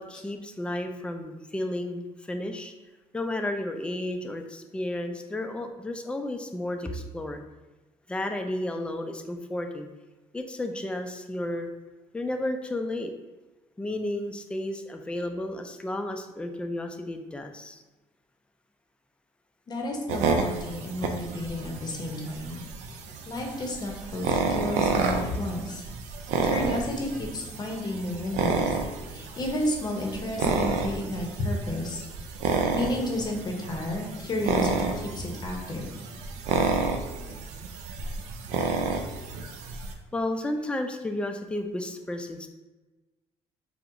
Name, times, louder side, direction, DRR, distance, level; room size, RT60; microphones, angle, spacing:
voice 1, 0.0-2.7 3.1-7.4 8.1-9.9 10.3-11.7 12.1-13.1 13.8-17.8 40.1-42.5, left 1 dB, 10° left, 5 dB, 0.3 m, -32 dB
voice 2, 19.7-22.6 23.3-25.8 26.4-28.7 29.1-32.0 32.7-35.9, left 1 dB, 35° left, 1 dB, 0.7 m, -32 dB
sound 1, 20.1-39.9, right 4 dB, 85° right, 0.4 m, -30 dB
4.4 x 2.0 x 2.5 m, 1.1 s
cardioid pair, 95°, 12 cm